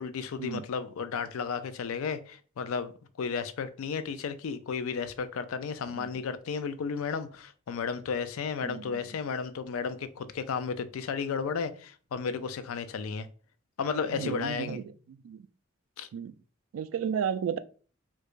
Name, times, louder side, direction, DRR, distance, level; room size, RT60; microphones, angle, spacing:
voice 1, 0.0-2.9 3.2-13.3 13.8-14.8 16.0-16.1, left 5 dB, 85° left, 0.4 m, -33 dB
voice 2, 8.6-9.0 14.1-15.5 16.1-16.3 16.7-17.6, right 7 dB, 75° right, 0.3 m, -34 dB
4.5 x 2.3 x 2.5 m
head